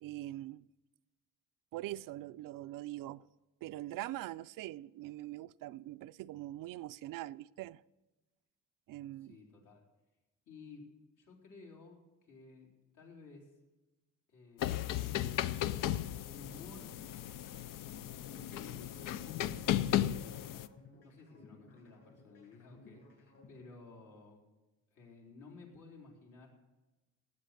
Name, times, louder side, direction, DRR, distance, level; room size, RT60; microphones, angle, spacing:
voice 1, 0.0-0.6 1.7-3.3 3.6-7.8 8.9-9.4, right 15 dB, 90° right, 0.5 m, -43 dB
voice 2, 9.2-9.8 10.5-10.8 11.2-12.7 12.9-13.5 14.3-15.2 16.2-16.9 18.2-20.6 21.0-24.4 24.9-26.5, left 3 dB, 70° left, 4.0 m, -55 dB
sound 1, 14.6-20.7, left 12 dB, 90° left, 0.6 m, -35 dB
sound 2, 18.2-24.2, left 3 dB, 55° left, 6.5 m, -59 dB
18.0 x 8.4 x 6.5 m
cardioid pair, 165°, 32 cm